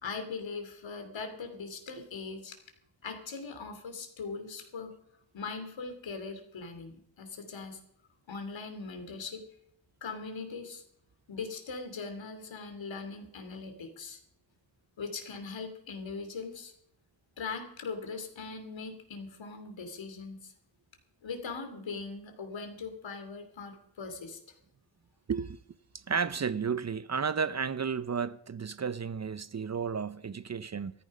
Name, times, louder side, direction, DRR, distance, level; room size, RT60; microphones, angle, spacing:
voice 1, 0.0-2.6 3.0-4.9 5.3-7.8 8.3-9.4 10.0-10.8 11.3-14.2 15.0-16.7 17.4-20.5 21.2-24.4, left 4 dB, 80° left, 2.9 m, -40 dB
voice 2, 26.1-30.9, right 6 dB, 35° right, 0.6 m, -32 dB
14.5 x 14.0 x 5.4 m
cardioid pair, 65°, 45 cm